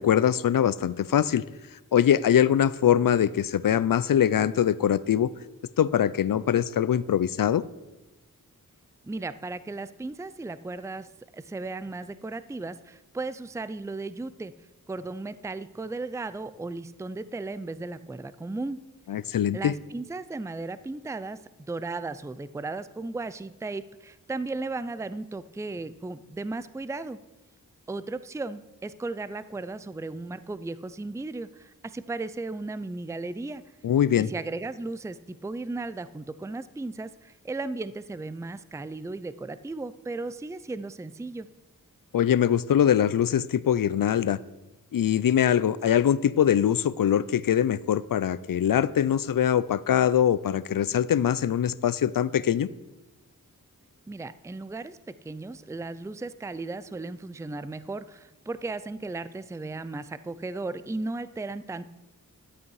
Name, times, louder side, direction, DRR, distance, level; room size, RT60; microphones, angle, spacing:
voice 1, 0.0-1.4 1.9-5.3 5.8-7.6 19.1-19.7 33.8-34.3 42.1-44.4 44.9-52.7, left 9 dB, 70° left, 18 dB, 0.5 m, -23 dB
voice 2, 9.0-11.1 11.3-14.5 14.9-18.8 19.5-21.4 21.7-27.2 27.9-33.6 34.2-41.5 54.1-61.9, right 3 dB, 10° right, 15 dB, 0.5 m, -35 dB
12.5 x 8.4 x 4.8 m, 1.1 s
cardioid pair, 45°, 35 cm